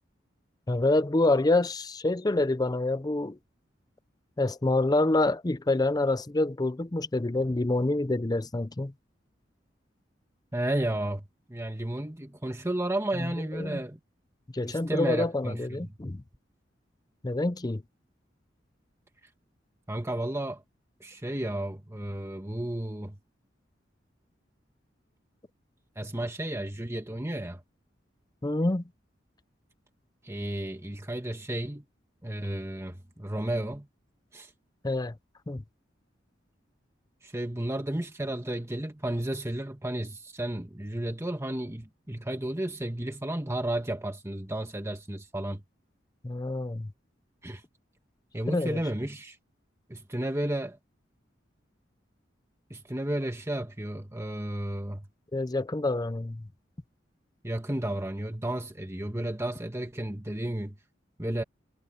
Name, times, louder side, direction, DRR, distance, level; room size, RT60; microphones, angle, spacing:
voice 1, 0.7-3.4 4.4-8.9 13.5-13.8 14.5-16.2 17.2-17.8 28.4-28.8 34.8-35.1 35.5-35.6 46.2-46.9 48.5-48.8 55.3-56.5, left 2 dB, 20° left, 0.5 m, -27 dB
voice 2, 10.5-14.0 14.7-15.9 19.9-20.6 21.0-23.2 25.9-27.6 30.2-31.8 32.2-33.9 34.3-34.5 37.2-45.6 47.4-47.6 48.3-49.4 49.9-50.8 52.7-55.1 57.4-60.8 61.2-61.4, right 1 dB, 15° right, 1.6 m, -33 dB
head